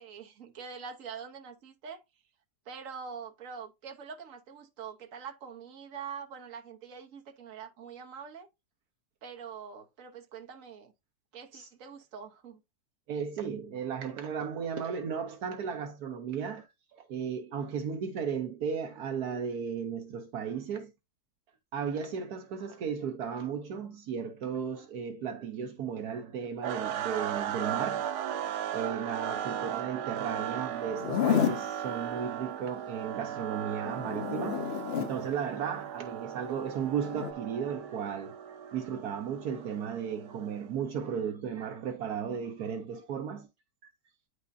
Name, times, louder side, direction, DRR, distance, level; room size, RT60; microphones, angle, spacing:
voice 1, 0.0-2.0 2.7-8.5 9.2-10.9 11.3-12.6, right 6 dB, 55° right, 1.4 m, -44 dB
voice 2, 13.1-20.9 21.7-34.7 35.0-43.5 43.8-43.9, right 7 dB, 70° right, 1.3 m, -35 dB
sound 1, 26.6-40.7, right 9 dB, 90° right, 1.3 m, -37 dB
Zipper (clothing), 30.9-31.7 33.8-35.2 37.0-37.3, left 9 dB, 70° left, 0.6 m, -30 dB
9.3 x 5.0 x 2.6 m
omnidirectional pair, 1.7 m